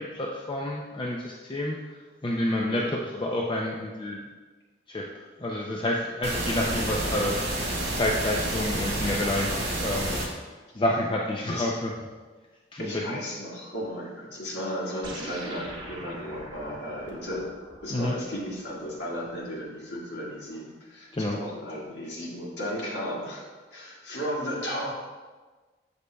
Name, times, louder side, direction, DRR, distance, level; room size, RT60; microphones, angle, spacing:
voice 1, 0.0-1.8 2.2-4.2 4.9-7.4 7.9-10.1 10.7-11.9 12.7-13.2 17.9-18.2 21.1-21.4, left 1 dB, 30° left, -1 dB, 0.5 m, -29 dB
sound 1, 6.2-10.2, right 1 dB, 65° right, 2.0 m, -29 dB
voice 2, 12.8-17.5 17.8-23.4 23.7-24.9, equal, 90° left, -4 dB, 1.8 m, -35 dB
sound 2, 15.0-19.7, right 1 dB, 25° right, 0.9 m, -44 dB
8.1 x 6.7 x 2.3 m, 1.3 s
head